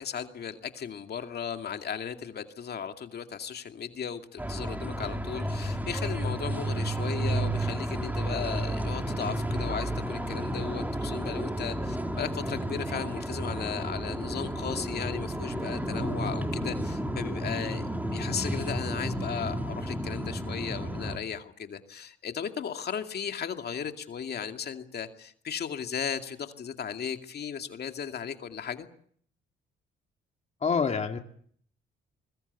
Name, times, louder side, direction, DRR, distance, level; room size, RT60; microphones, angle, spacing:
voice 1, 0.0-28.9, left 7 dB, 55° left, 6 dB, 2.4 m, -36 dB
sound 1, 4.4-21.2, right 1 dB, 10° right, 3.4 m, -32 dB
voice 2, 30.6-31.2, left 5 dB, 35° left, 5 dB, 2.3 m, -26 dB
25.0 x 21.0 x 8.3 m, 0.62 s
cardioid pair, 90°, 20 cm